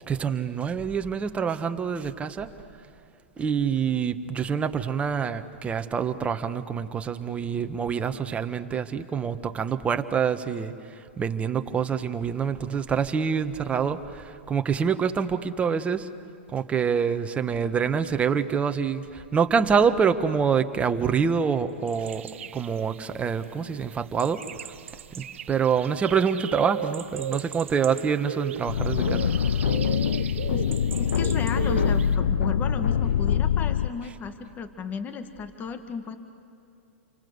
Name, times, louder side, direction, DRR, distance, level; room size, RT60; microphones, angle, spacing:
voice 1, 0.1-2.5 3.4-10.7 11.2-16.1 16.5-24.4 25.1-29.3, right 6 dB, 20° right, 8 dB, 1.3 m, -26 dB
sound 1, 21.9-32.2, right 9 dB, 70° right, 0.9 m, -37 dB
sound 2, 28.7-33.9, left 8 dB, 75° left, 0.6 m, -24 dB
voice 2, 30.5-36.2, left 5 dB, 25° left, 9 dB, 1.7 m, -35 dB
29.5 x 24.5 x 8.1 m, 2.7 s
hypercardioid pair, 115°, 7 cm